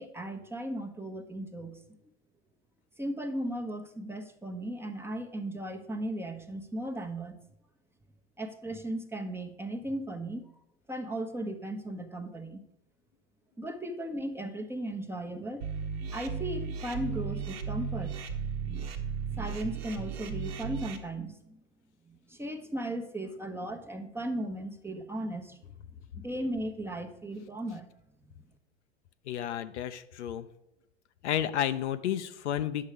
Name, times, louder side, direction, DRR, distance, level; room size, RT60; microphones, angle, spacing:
voice 1, 0.0-1.8 3.0-7.4 8.4-10.5 10.9-12.6 13.6-15.7 16.1-18.2 19.4-21.6 22.0-25.6 26.1-27.9 28.2-28.4, right 1 dB, 5° right, 5 dB, 1.0 m, -36 dB
sound 1, 15.6-21.0, right 6 dB, 55° right, 1.2 m, -35 dB
voice 2, 29.3-30.5 31.2-32.9, left 10 dB, 70° left, 10 dB, 0.7 m, -31 dB
9.3 x 6.5 x 5.0 m, 0.85 s
figure-of-eight pair, 80°, 35 cm